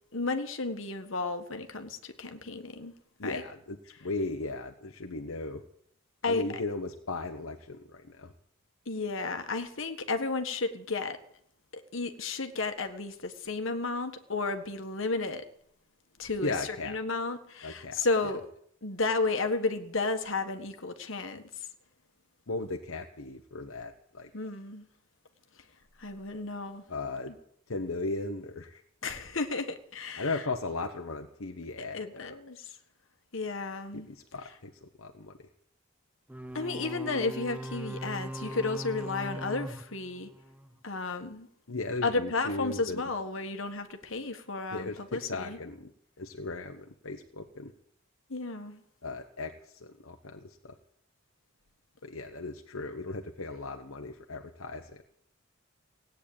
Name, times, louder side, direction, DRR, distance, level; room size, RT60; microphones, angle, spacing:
voice 1, 0.1-2.9 3.2-3.4 6.2-6.4 8.8-11.2 11.7-15.4 16.2-18.4 18.8-21.4 24.3-24.9 26.0-26.8 29.0-30.3 31.9-32.6 33.3-34.1 36.5-40.3 40.8-41.5 42.0-45.6 48.3-48.8, left 3 dB, 65° left, 1.6 m, -33 dB
voice 2, 3.2-5.6 6.2-8.3 16.4-17.0 17.6-18.0 22.5-24.3 26.9-27.3 27.7-28.8 30.2-32.4 33.9-35.3 41.7-43.0 44.7-45.9 46.2-47.7 49.0-50.7 52.0-55.0, left 3 dB, 80° left, 1.1 m, -37 dB
sound 1, 36.3-40.8, right 1 dB, 5° right, 0.7 m, -40 dB
17.5 x 9.3 x 8.7 m
head